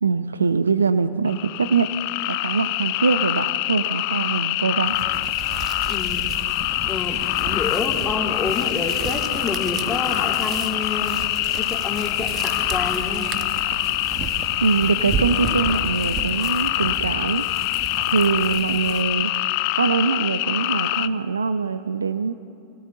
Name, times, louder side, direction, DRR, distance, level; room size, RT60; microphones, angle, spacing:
voice 1, 0.0-1.9 2.3-5.0 14.6-17.5 18.1-19.3 19.8-22.3, right 5 dB, 80° right, 13 dB, 0.7 m, -23 dB
sound 1, 1.2-21.1, left 19 dB, 50° left, 0.5 m, -25 dB
sound 2, 4.8-19.3, right 7 dB, 35° right, 1.3 m, -34 dB
voice 2, 5.9-6.3 6.9-11.1 11.6-13.3, left 4 dB, 20° left, 1 dB, 3.2 m, -28 dB
27.0 x 25.0 x 3.8 m, 2.7 s
figure-of-eight pair, 95°, 0 cm